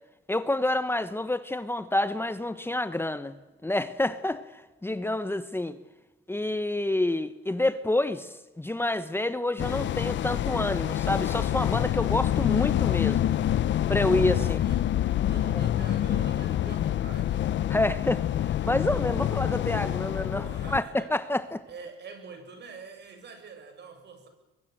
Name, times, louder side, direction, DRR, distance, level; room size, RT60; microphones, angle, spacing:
voice 1, 0.3-3.4 3.6-5.8 6.3-13.2 13.9-14.6 15.6-15.7 17.7-21.6, left 1 dB, 10° left, 1.2 m, -28 dB
sound 1, 9.6-20.8, left 11 dB, 70° left, 0.9 m, -27 dB
voice 2, 14.2-15.0 15.3-17.4 20.4-21.1 21.7-24.3, right 5 dB, 60° right, 7.5 m, -45 dB
24.0 x 23.0 x 7.9 m
cardioid pair, 90°, 20 cm